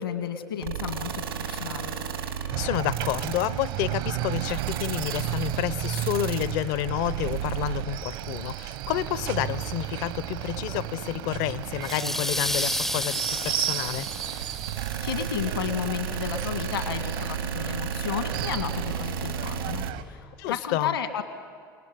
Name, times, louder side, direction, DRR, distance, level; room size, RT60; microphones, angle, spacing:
voice 1, 0.0-1.9 14.8-21.2, left 8 dB, 75° left, 8 dB, 1.9 m, -33 dB
sound 1, 0.6-19.9, right 7 dB, 80° right, 2.6 m, -33 dB
sound 2, 2.5-20.0, right 14 dB, 60° right, 1.2 m, -34 dB
voice 2, 2.6-14.1 20.4-20.9, left 13 dB, 60° left, 18 dB, 0.9 m, -30 dB
sound 3, 11.8-15.3, left 1 dB, 5° left, 0.6 m, -31 dB
29.0 x 19.5 x 9.8 m, 2.1 s
figure-of-eight pair, 75°, 12 cm